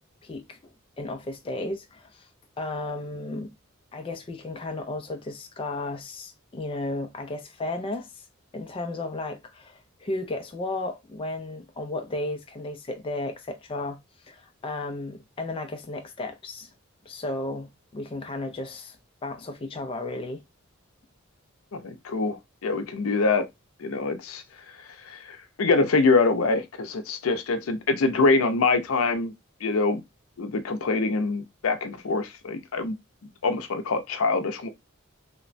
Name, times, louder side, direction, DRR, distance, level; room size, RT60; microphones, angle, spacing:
voice 1, 0.2-0.6 1.0-2.3 2.6-3.5 3.9-8.3 8.5-16.7 17.1-19.0 19.2-20.4, left 2 dB, 25° left, 0.3 m, -34 dB
voice 2, 21.7-23.4 23.8-24.4 25.0-29.3 29.6-30.0 30.4-33.0 33.4-34.7, left 3 dB, 85° left, 0.5 m, -24 dB
2.9 x 2.1 x 2.5 m
head